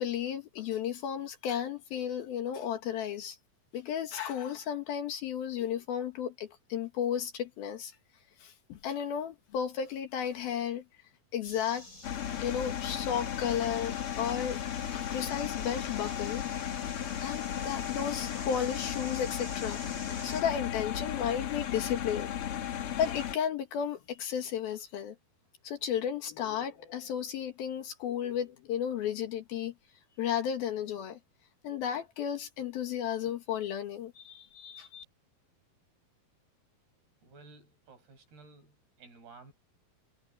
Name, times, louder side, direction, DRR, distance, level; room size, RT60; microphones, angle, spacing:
voice 1, 0.0-3.4 3.7-7.9 8.4-10.8 11.3-11.9 12.4-14.6 14.9-16.4 17.2-19.8 20.1-22.3 22.7-25.2 25.6-29.7 30.2-31.2 31.6-35.0, left 9 dB, 75° left, 3.5 m, -33 dB
sound 1, 11.4-20.4, left 1 dB, 20° left, 8.3 m, -48 dB
sound 2, 12.0-23.4, left 10 dB, 60° left, 1.5 m, -35 dB
voice 2, 37.2-39.5, right 4 dB, 80° right, 7.6 m, -54 dB
omnidirectional pair, 4.4 m